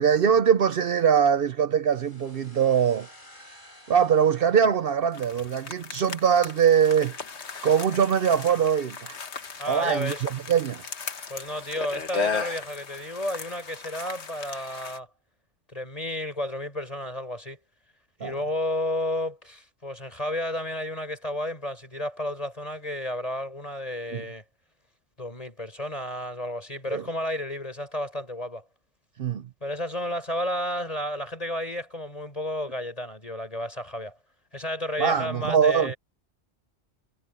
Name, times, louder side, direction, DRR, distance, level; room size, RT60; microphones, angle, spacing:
voice 1, 0.0-3.1 3.9-7.1 7.6-9.1 9.7-10.8 18.2-18.3 24.1-24.2 26.9-27.0 29.2-29.4 35.0-35.9, right 7 dB, 60° right, 0.9 m, -22 dB
sound 1, 1.9-5.6, left 1 dB, 50° left, 7.5 m, -53 dB
sound 2, 5.1-15.0, left 5 dB, 85° left, 1.7 m, -36 dB
voice 2, 9.6-10.2 11.3-15.1 15.7-17.6 18.2-24.4 25.2-28.6 29.6-34.2 34.5-36.0, left 1 dB, 35° left, 5.7 m, -32 dB
omnidirectional pair, 1.1 m